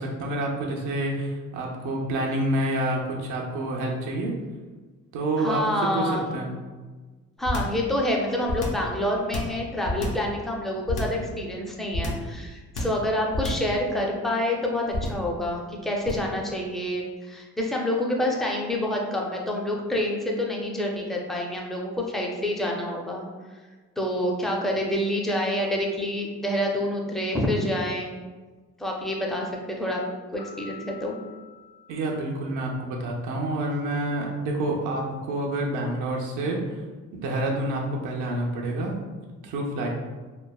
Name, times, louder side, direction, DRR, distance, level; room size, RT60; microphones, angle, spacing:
voice 1, 0.0-4.3 5.1-5.6 5.9-6.5 31.9-36.6 37.1-39.0 39.4-39.9, right 1 dB, 85° right, -1 dB, 0.5 m, -28 dB
voice 2, 5.4-6.4 7.4-23.3 24.0-28.1 28.8-30.0 30.3-31.1, left 1 dB, ahead, -1 dB, 0.4 m, -27 dB
sound 1, 7.4-7.8 8.4-8.9 9.3-10.3 10.9-11.3 11.9-12.3 12.7-13.0 13.3-13.7 14.9-15.3 16.0-16.3, left 1 dB, 80° left, 0.6 m, -29 dB
Piano, 30.4-32.9, left 6 dB, 40° left, 0.7 m, -48 dB
3.1 x 2.0 x 2.2 m, 1.3 s
cardioid pair, 90°, 30 cm